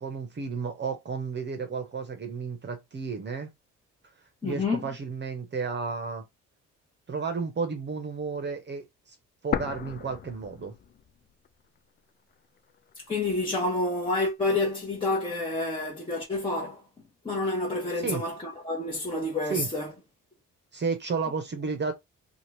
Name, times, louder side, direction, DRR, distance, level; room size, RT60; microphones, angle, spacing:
voice 1, 0.0-3.5 4.4-6.2 7.1-9.2 9.4-10.7 18.0-18.2 19.5-19.7 20.7-21.9, right 5 dB, 35° right, 0.8 m, -32 dB
voice 2, 4.4-4.8 12.9-16.8 17.2-19.9, left 2 dB, 20° left, 1.0 m, -29 dB
sound 1, 9.5-11.5 11.8-11.9 12.6-13.5, left 8 dB, 35° left, 0.4 m, -35 dB
2.9 x 2.4 x 3.2 m
cardioid pair, 90°, 30 cm